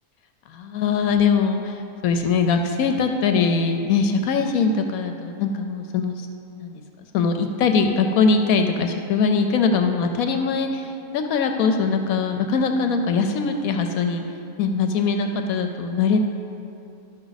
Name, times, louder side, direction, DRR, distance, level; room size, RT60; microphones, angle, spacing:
voice 1, 0.5-1.7 2.0-6.1 6.6-6.7 7.1-14.2 14.6-16.2, left 5 dB, 75° left, 5 dB, 1.0 m, -21 dB
12.0 x 6.0 x 4.0 m, 2.7 s
omnidirectional pair, 1.6 m